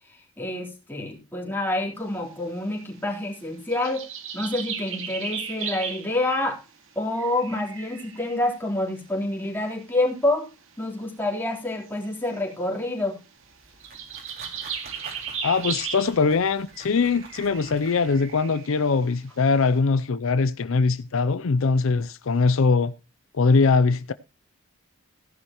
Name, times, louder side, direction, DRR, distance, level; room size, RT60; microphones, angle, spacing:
voice 1, 0.1-4.1 4.3-6.6 7.0-10.5 10.8-13.2, left 1 dB, 10° left, 3.7 m, -27 dB
sound 1, 3.7-6.2 7.1-8.7 9.3-9.4 10.2-10.3 11.8-12.4 13.8-16.3 16.7-19.1, right 7 dB, 65° right, 2.2 m, -36 dB
sound 2, 13.4-18.3, right 3 dB, 45° right, 4.4 m, -47 dB
voice 2, 15.4-22.9 23.3-24.1, left 4 dB, 65° left, 0.5 m, -22 dB
16.5 x 11.0 x 3.0 m
head